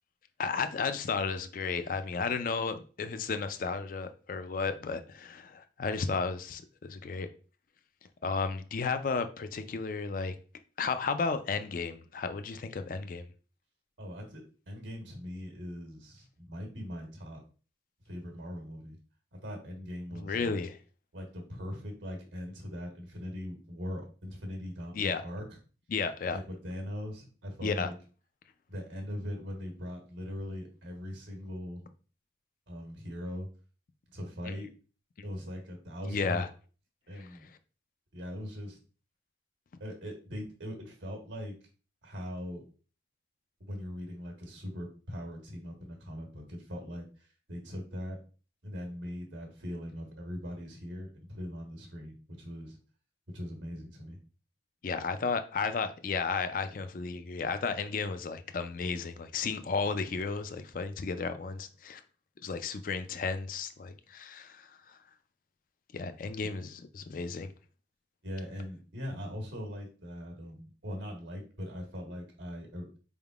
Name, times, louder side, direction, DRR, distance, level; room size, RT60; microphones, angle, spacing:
voice 1, 0.4-7.3 8.2-10.3 10.8-13.2 20.1-20.8 24.9-25.2 25.9-26.4 27.6-27.9 34.5-34.6 36.1-36.5 37.2-37.3 54.8-62.0 62.4-64.7 65.9-67.5, left 4 dB, 50° left, 0.4 m, -33 dB
voice 2, 14.0-17.4 18.1-19.0 19.3-20.5 21.1-25.4 26.3-27.9 28.7-31.8 32.7-33.5 34.1-34.7 35.2-36.4 37.1-37.5 38.1-38.8 39.8-41.6 42.0-42.6 43.6-48.2 48.6-52.8 53.3-54.2 66.4-66.5 68.2-72.9, equal, 85° right, 1.3 m, -41 dB
4.5 x 3.5 x 2.4 m
head